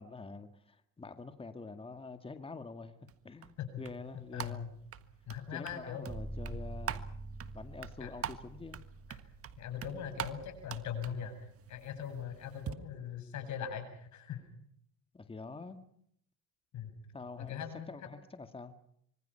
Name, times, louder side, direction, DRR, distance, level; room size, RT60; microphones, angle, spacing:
voice 1, 0.0-2.9 3.2-4.7 5.5-7.1 7.5-8.8 15.1-15.8 17.1-17.6 17.9-18.7, left 3 dB, 20° left, 2.1 m, -46 dB
sound 1, 3.1-12.7, right 9 dB, 45° right, 1.6 m, -46 dB
voice 2, 4.3-4.7 5.3-6.1 8.0-8.1 9.1-9.2 9.6-11.3 11.7-14.4 16.7-16.9 17.4-17.8, left 8 dB, 65° left, 7.9 m, -40 dB
sound 2, 6.1-10.2, right 2 dB, 25° right, 2.9 m, -45 dB
26.0 x 24.0 x 5.8 m
cardioid pair, 105°, 31 cm